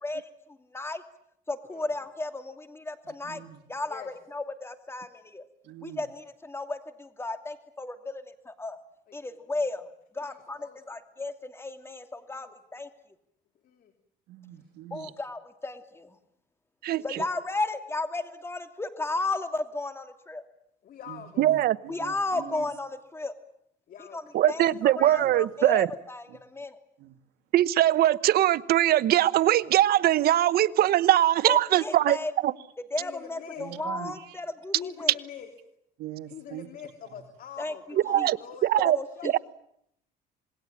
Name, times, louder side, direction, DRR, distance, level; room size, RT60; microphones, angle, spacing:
voice 1, 0.0-1.0 1.5-3.4 3.7-5.5 5.8-8.8 9.1-9.9 10.1-12.9 14.9-16.2 17.0-20.5 21.9-23.3 24.1-26.8 31.5-32.3 32.9-35.1 37.6-37.7 38.1-38.3 38.9-39.4, left 2 dB, 15° left, 8 dB, 2.8 m, -34 dB
voice 2, 3.0-3.6 5.6-6.0 14.3-15.1 21.1-22.7 25.2-25.5 26.3-26.4 27.0-27.2 32.6-32.7 33.6-34.4 36.0-36.7 37.1-37.2, right 13 dB, 85° right, 8 dB, 2.0 m, -43 dB
voice 3, 9.1-9.5 10.2-10.8 12.3-12.5 13.6-13.9 16.9-17.3 20.8-21.6 23.9-24.7 25.0-25.3 33.0-33.7 34.7-35.5 36.3-38.7 39.2-39.4, left 8 dB, 55° left, 6 dB, 3.1 m, -45 dB
voice 4, 16.8-17.2 21.4-21.8 24.3-25.9 27.5-32.2 32.4-32.5 38.1-38.4 38.6-39.0 39.3-39.4, right 13 dB, 65° right, 15 dB, 1.0 m, -21 dB
27.0 x 20.5 x 8.9 m, 0.74 s
cardioid pair, 110°, 17 cm